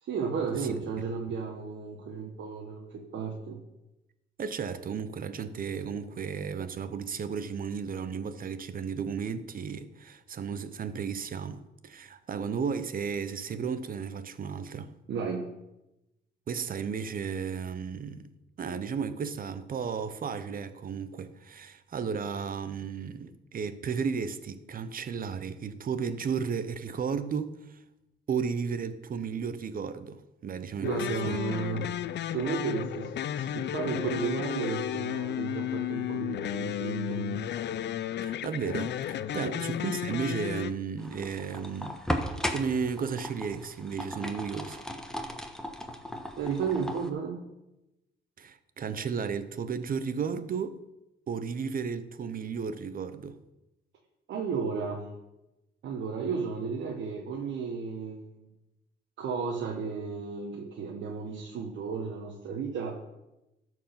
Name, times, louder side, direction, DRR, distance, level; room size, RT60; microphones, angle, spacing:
voice 1, 0.0-3.6 15.1-15.5 30.8-31.9 32.3-37.4 39.4-39.6 46.4-47.4 54.3-55.1 55.8-58.5 59.2-63.0, right 5 dB, 65° right, 1.2 m, -33 dB
voice 2, 4.4-14.9 16.5-18.3 18.6-27.8 28.3-30.9 31.2-31.4 31.8-31.9 38.2-42.0 42.5-44.9 48.4-50.8 51.3-53.4, right 6 dB, 45° right, 0.8 m, -34 dB
sound 1, 30.8-40.7, left 11 dB, 60° left, 0.5 m, -33 dB
sound 2, 41.0-47.1, equal, 5° left, 1.2 m, -36 dB
13.0 x 4.7 x 5.8 m
cardioid pair, 90°, 20 cm